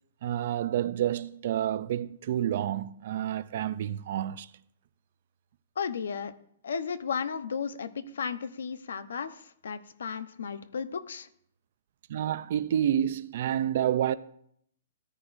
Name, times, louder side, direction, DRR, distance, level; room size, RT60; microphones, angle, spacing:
voice 1, 0.2-4.5 12.1-14.1, right 10 dB, 45° right, 0.4 m, -29 dB
voice 2, 5.8-6.3 6.6-11.3, left 6 dB, 80° left, 0.9 m, -34 dB
16.5 x 9.9 x 2.6 m
hypercardioid pair, 170°, 0 cm